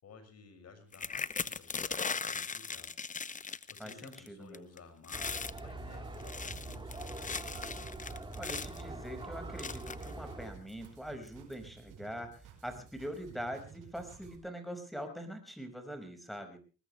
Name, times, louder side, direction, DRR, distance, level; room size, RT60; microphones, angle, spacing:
voice 1, 0.0-3.1 3.3-7.4, left 4 dB, 55° left, 7 dB, 6.6 m, -55 dB
sound 1, 0.9-4.3 4.5-4.8 5.0-5.6 6.1-8.8 9.6-10.1 10.8-10.9 11.3-11.5, left 5 dB, 25° left, 0.8 m, -39 dB
voice 2, 3.8-4.7 8.4-16.6, equal, ahead, 7 dB, 5.6 m, -43 dB
sound 2, 5.1-10.5, right 2 dB, 15° right, 4.0 m, -44 dB
sound 3, 5.6-14.4, right 7 dB, 85° right, 5.1 m, -55 dB
21.0 x 19.5 x 3.4 m, 0.36 s
cardioid pair, 90°, 30 cm